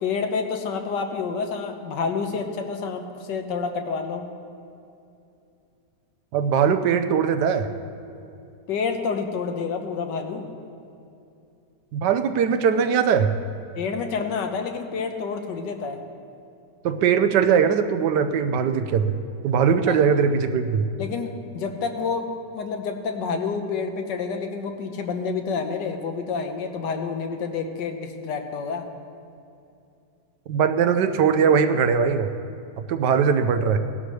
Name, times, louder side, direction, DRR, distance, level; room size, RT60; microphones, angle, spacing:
voice 1, 0.0-4.2 8.7-10.5 13.8-16.0 19.9-20.0 21.0-28.9, left 5 dB, 90° left, 5 dB, 1.6 m, -28 dB
voice 2, 6.3-7.7 11.9-13.3 16.8-19.2 19.4-20.8 30.5-32.3 32.8-33.8, right 7 dB, 75° right, 9 dB, 1.3 m, -20 dB
17.5 x 11.5 x 3.2 m, 2.6 s
omnidirectional pair, 1.9 m